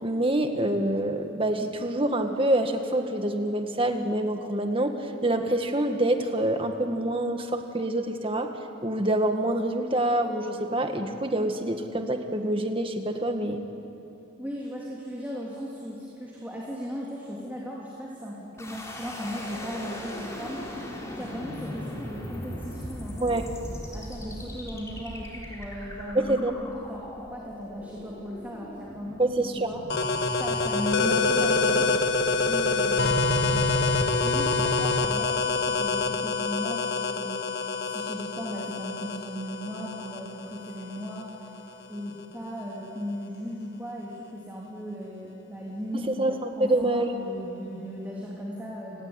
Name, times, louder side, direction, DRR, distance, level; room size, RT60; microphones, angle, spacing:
voice 1, 0.0-4.9 5.2-8.5 8.8-13.6 23.2-23.5 26.2-26.5 29.2-29.7 46.1-47.1, right 1 dB, 25° right, 5 dB, 1.8 m, -26 dB
voice 2, 14.4-20.7 21.1-23.3 23.9-26.3 26.7-29.8 30.4-32.0 32.4-33.7 34.2-41.5 41.9-49.1, equal, 10° right, -5 dB, 3.2 m, -37 dB
sound 1, 18.6-31.5, left 1 dB, 15° left, 3.9 m, -39 dB
sound 2, 29.9-41.3, left 3 dB, 55° left, 1.5 m, -26 dB
30.0 x 19.0 x 9.7 m, 2.9 s
head